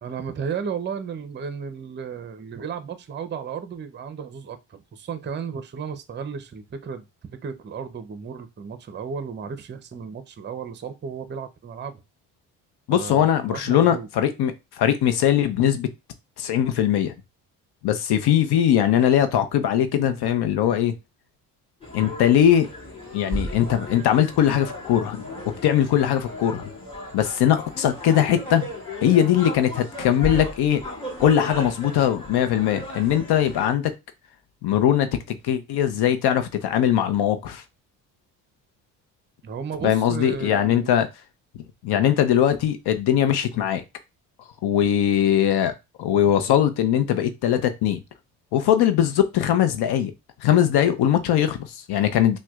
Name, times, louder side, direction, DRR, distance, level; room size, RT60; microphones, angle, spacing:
voice 1, 0.0-12.0 12.9-14.1 39.4-41.0 42.0-42.2, right 6 dB, 25° right, 0.7 m, -34 dB
voice 2, 12.9-15.9 16.4-17.1 17.8-20.9 21.9-22.7 23.1-25.3 25.6-26.7 27.1-28.7 29.0-30.8 31.2-33.9 34.6-35.1 35.4-37.6 39.8-41.1 41.8-43.8 44.6-45.7 46.0-48.0 48.5-50.1 50.4-52.4, left 10 dB, 60° left, 0.8 m, -20 dB
sound 1, 21.8-33.7, left 1 dB, 15° left, 2.1 m, -35 dB
5.8 x 2.3 x 2.4 m
hypercardioid pair, 65°, 44 cm